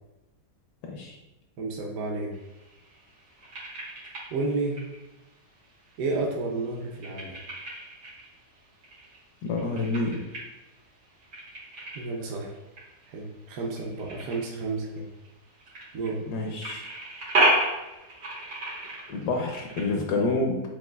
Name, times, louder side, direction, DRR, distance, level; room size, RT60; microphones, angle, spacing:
voice 1, 0.8-1.2 9.4-10.2 16.3-16.9 19.1-20.6, left 2 dB, 75° left, 1 dB, 1.2 m, -28 dB
voice 2, 1.6-2.3 4.3-4.8 6.0-7.4 11.9-12.5 13.1-15.1 15.9-16.2, right 3 dB, 65° right, -1 dB, 1.0 m, -31 dB
sound 1, 2.3-19.9, right 1 dB, 85° right, 2.0 m, -34 dB
7.2 x 2.5 x 2.3 m, 1.0 s
omnidirectional pair, 1.8 m